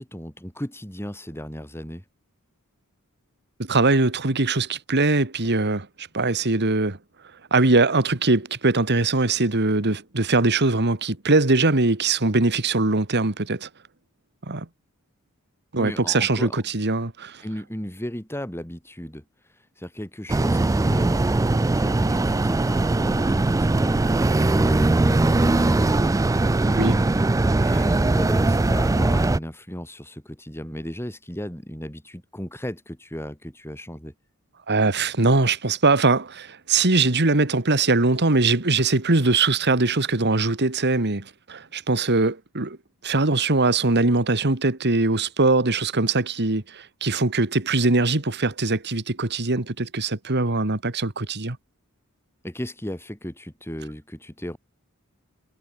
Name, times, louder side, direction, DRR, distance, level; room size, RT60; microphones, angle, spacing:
voice 1, 0.0-2.0 15.8-16.6 17.4-27.2 27.6-34.1 52.4-54.6, equal, 10° left, 4.3 m, -35 dB
voice 2, 3.6-7.0 7.5-13.7 14.5-14.7 15.7-17.4 26.8-27.0 34.7-42.8 43.0-51.6, right 3 dB, 50° right, 2.1 m, -21 dB
sound 1, 20.3-29.4, right 2 dB, 15° right, 0.4 m, -20 dB
head